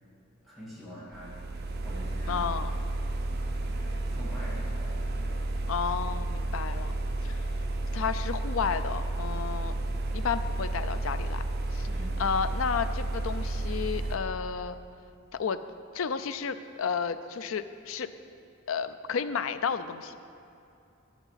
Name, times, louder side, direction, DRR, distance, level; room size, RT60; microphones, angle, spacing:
voice 1, 0.4-1.4 1.8-2.5 3.2-5.0 5.2-5.5 11.8-12.2, equal, ahead, -9 dB, 2.3 m, -45 dB
sound 1, 1.1-14.2, right 2 dB, 50° right, 0.7 m, -32 dB
voice 2, 2.3-2.7 5.7-6.9 7.2-7.4 7.9-9.7 10.1-11.4 11.7-11.9 12.2-14.8 15.3-15.6 15.9-18.1 18.7-20.2, left 6 dB, 90° left, 11 dB, 0.5 m, -32 dB
10.5 x 6.9 x 5.7 m, 2.6 s
head